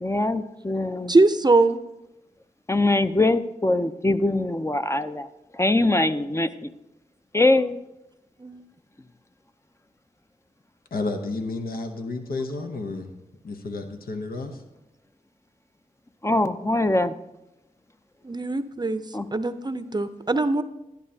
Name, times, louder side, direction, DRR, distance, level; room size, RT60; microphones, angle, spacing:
voice 1, 0.0-1.1 2.7-5.3 5.5-6.7 7.3-7.8 16.2-17.1 19.1-19.3, left 2 dB, 20° left, 10 dB, 0.5 m, -22 dB
voice 2, 1.1-1.8 8.4-8.6 18.2-19.0 19.3-20.6, right 2 dB, 30° right, 12 dB, 0.6 m, -21 dB
voice 3, 10.9-13.1 13.4-14.6, left 3 dB, 85° left, 5 dB, 0.8 m, -31 dB
11.5 x 10.5 x 2.7 m, 0.92 s
cardioid pair, 45°, 15 cm